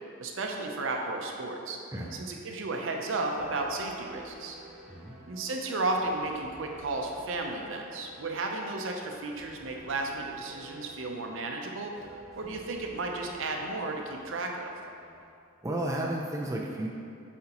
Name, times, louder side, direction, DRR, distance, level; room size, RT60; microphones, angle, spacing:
voice 1, 0.2-1.8 2.1-4.6 5.3-11.9 12.3-14.7, right 2 dB, 75° right, 2 dB, 0.6 m, -33 dB
sound 1, 3.3-15.3, equal, ahead, 0.9 m, -52 dB
voice 2, 15.6-16.9, right 1 dB, 15° right, -2 dB, 0.4 m, -32 dB
7.6 x 4.3 x 2.9 m, 2.5 s
head